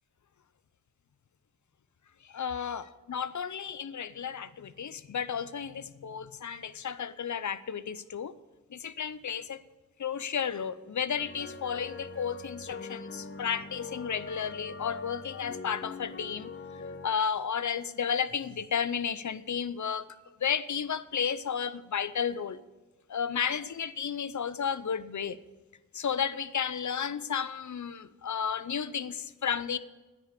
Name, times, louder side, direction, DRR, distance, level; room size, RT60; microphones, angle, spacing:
voice 1, 2.3-2.8 3.1-8.3 8.7-9.6 10.0-16.5 17.0-20.0 20.4-22.6 23.1-25.4 25.9-29.8, left 7 dB, 60° left, 16 dB, 0.7 m, -33 dB
sound 1, 11.2-17.1, left 4 dB, 35° left, 1.0 m, -42 dB
10.0 x 9.1 x 8.3 m, 1.2 s
cardioid pair, 40°, 33 cm